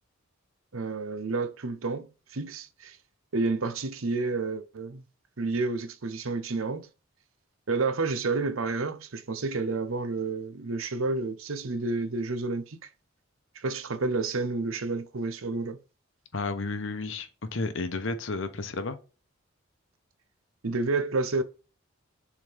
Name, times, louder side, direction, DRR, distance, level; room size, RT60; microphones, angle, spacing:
voice 1, 0.7-3.0 3.3-5.1 5.4-6.9 7.7-12.9 13.5-15.8 20.6-21.4, right 3 dB, 85° right, 0.8 m, -30 dB
voice 2, 16.3-19.0, left 3 dB, 65° left, 0.9 m, -32 dB
7.2 x 3.9 x 3.4 m
head